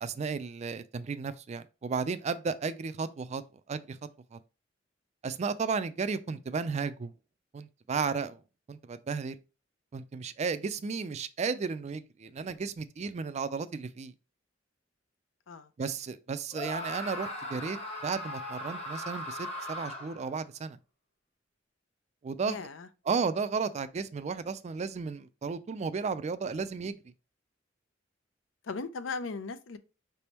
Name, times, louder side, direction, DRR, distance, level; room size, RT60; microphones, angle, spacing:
voice 1, 0.0-3.4 3.7-4.0 4.3-4.4 5.2-7.1 7.5-8.4 8.7-9.4 9.9-14.1 15.8-17.8 18.0-20.8 22.2-22.6 23.1-27.0, right 5 dB, 35° right, 0.3 m, -34 dB
Screaming, 16.5-20.3, left 1 dB, 35° left, 1.1 m, -38 dB
voice 2, 22.5-22.9 28.6-29.8, left 4 dB, 80° left, 0.5 m, -38 dB
5.2 x 3.4 x 2.9 m
head